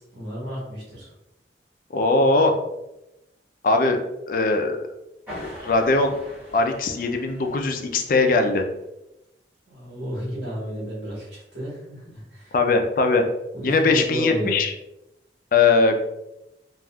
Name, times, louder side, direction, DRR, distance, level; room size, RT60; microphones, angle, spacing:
voice 1, 0.1-1.1 9.7-12.5 13.5-14.5, equal, 80° right, -6 dB, 1.4 m, -32 dB
voice 2, 1.9-2.5 3.6-4.0 4.3-4.8 5.3-6.1 6.5-8.6 12.5-13.2 13.6-14.7 15.5-16.0, left 3 dB, 50° left, 4 dB, 0.4 m, -20 dB
sound 1, 5.3-8.8, equal, 10° right, 1.0 m, -42 dB
3.4 x 2.4 x 2.2 m, 0.90 s
head